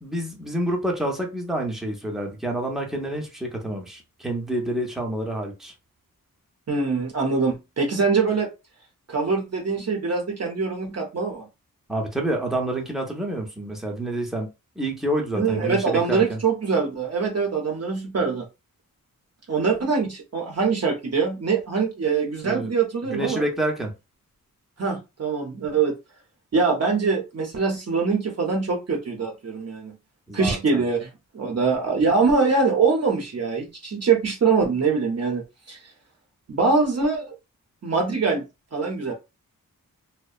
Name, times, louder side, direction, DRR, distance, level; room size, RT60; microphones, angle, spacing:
voice 1, 0.0-5.7 11.9-14.5 14.8-16.4 22.4-22.7 23.1-23.9 30.3-30.8, right 1 dB, ahead, 0.5 m, -28 dB
voice 2, 6.7-8.5 9.1-11.5 15.3-18.5 19.5-23.4 24.8-25.9 26.5-30.0 30.3-31.1 31.3-35.8 36.5-37.2 37.8-38.4 38.7-39.1, right 4 dB, 45° right, 0.6 m, -23 dB
2.6 x 2.1 x 2.3 m
wide cardioid pair, 150°, 35 cm